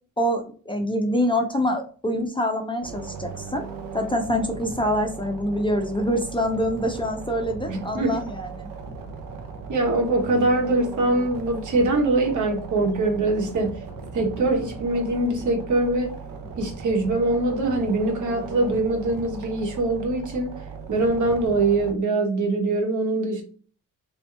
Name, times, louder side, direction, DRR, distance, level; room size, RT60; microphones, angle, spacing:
voice 1, 0.2-3.6 3.9-8.7, equal, 15° left, 4 dB, 0.4 m, -25 dB
sound 1, 2.8-21.9, right 5 dB, 80° right, 0.8 m, -38 dB
voice 2, 7.7-8.2 9.7-13.8 14.1-16.1 16.6-20.5 20.9-23.4, right 2 dB, 65° right, 2 dB, 1.2 m, -23 dB
3.4 x 2.9 x 3.2 m, 0.40 s
wide cardioid pair, 135°, 33 cm